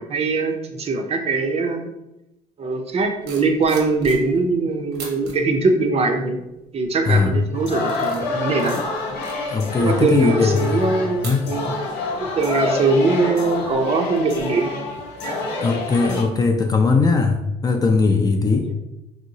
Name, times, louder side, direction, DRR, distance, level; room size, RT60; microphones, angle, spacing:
voice 1, 0.0-1.9 2.6-6.4 6.7-8.8 9.8-11.7 12.2-14.7 15.2-15.4 18.6-18.7, right 3 dB, 35° right, 4 dB, 0.5 m, -21 dB
sound 1, 3.0-4.5 4.9-5.3 6.0-6.3 6.8-7.2 7.6-11.9 12.2-12.5, right 3 dB, 85° right, 0.9 m, -41 dB
sound 2, 7.5-16.2, left 3 dB, 75° left, 0.7 m, -27 dB
voice 2, 9.5-10.8 11.2-11.5 15.6-18.7, left 4 dB, 25° left, 4 dB, 0.3 m, -19 dB
3.0 x 2.8 x 2.7 m, 0.90 s
cardioid pair, 110°, 17 cm